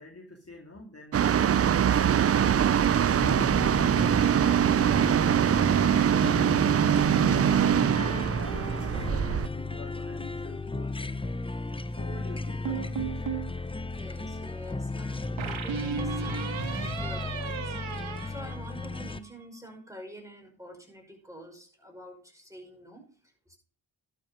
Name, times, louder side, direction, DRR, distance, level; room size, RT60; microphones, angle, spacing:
voice 1, 0.0-2.5 2.9-7.1 7.6-11.4 11.9-13.2, left 2 dB, 30° left, 2 dB, 2.2 m, -47 dB
sound 1, 1.1-9.5, right 9 dB, 30° right, 0.4 m, -23 dB
sound 2, 2.8-19.2, left 3 dB, 10° left, 0.8 m, -35 dB
sound 3, 12.7-13.5 15.4-19.2, right 6 dB, 70° right, 1.8 m, -35 dB
voice 2, 13.8-17.7 18.3-23.1 23.5-23.6, equal, 5° right, 2 dB, 5.5 m, -47 dB
12.0 x 7.0 x 5.1 m, 0.41 s
supercardioid pair, 45°, 48 cm